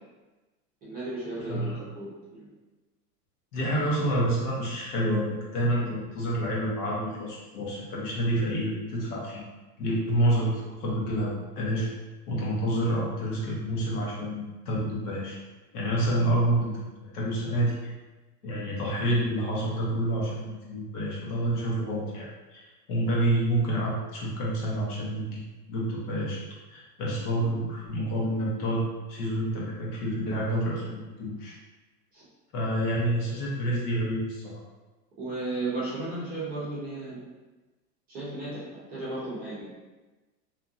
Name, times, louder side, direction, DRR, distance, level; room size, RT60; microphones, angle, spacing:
voice 1, 0.8-2.5 32.1-32.3 35.2-37.2 38.1-39.7, right 2 dB, 20° right, -9 dB, 0.7 m, -35 dB
voice 2, 1.5-1.9 3.5-9.4 9.8-11.3 11.6-11.9 12.3-15.4 15.7-16.7 17.0-17.7 18.4-22.6 22.9-25.4 25.7-26.4 26.7-28.8 29.1-31.5 32.5-34.6, right 1 dB, 65° left, -4 dB, 1.1 m, -28 dB
2.8 x 2.5 x 2.5 m, 1.2 s
hypercardioid pair, 140°, 48 cm